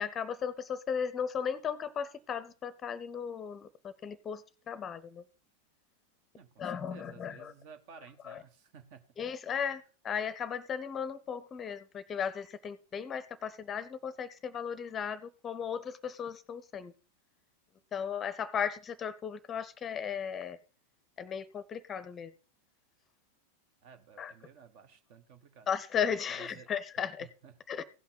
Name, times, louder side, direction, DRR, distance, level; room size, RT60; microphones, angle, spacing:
voice 1, 0.0-5.2 6.6-7.5 8.2-8.4 9.2-16.9 17.9-20.6 21.2-22.3 24.2-24.3 25.7-27.3 27.7-27.8, left 7 dB, 25° left, 16 dB, 0.7 m, -36 dB
voice 2, 6.3-9.1 23.8-25.7 26.3-26.7 27.4-27.5, right 6 dB, 45° right, 9 dB, 1.3 m, -54 dB
16.5 x 5.8 x 4.0 m, 0.36 s
figure-of-eight pair, 90°, 0 cm